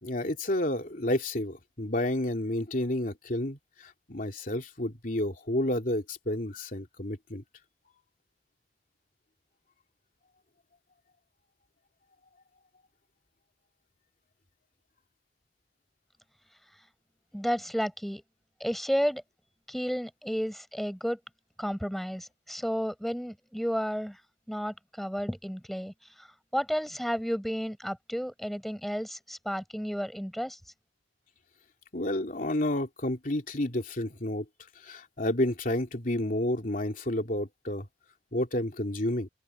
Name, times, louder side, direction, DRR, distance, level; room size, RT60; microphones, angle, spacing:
voice 1, 0.0-7.4 31.9-34.5 34.8-37.9 38.3-39.3, left 1 dB, 50° left, 3.1 m, -30 dB
voice 2, 17.3-18.2 18.6-19.2 19.7-21.2 21.6-24.2 24.5-26.3 26.5-30.6, equal, ahead, 4.3 m, -32 dB
open air
head